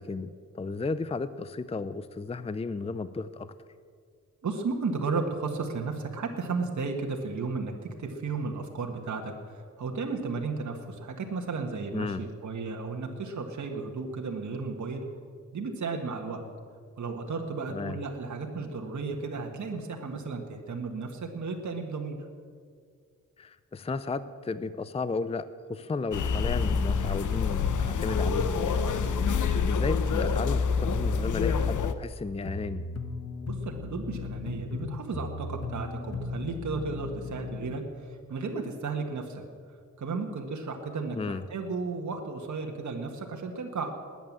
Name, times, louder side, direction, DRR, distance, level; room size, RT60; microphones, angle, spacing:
voice 1, 0.0-3.5 11.9-12.2 17.7-18.0 23.4-32.9 41.1-41.4, left 3 dB, 20° left, 14 dB, 0.5 m, -34 dB
voice 2, 4.4-15.0 15.5-16.4 17.0-22.2 33.5-39.4 40.0-43.9, right 4 dB, 70° right, 2 dB, 1.7 m, -34 dB
sound 1, 26.1-31.9, left 5 dB, 75° left, 0.9 m, -27 dB
sound 2, 32.4-37.8, left 3 dB, 55° left, 1.4 m, -37 dB
20.0 x 9.2 x 7.5 m, 2.1 s
wide cardioid pair, 100°, 30 cm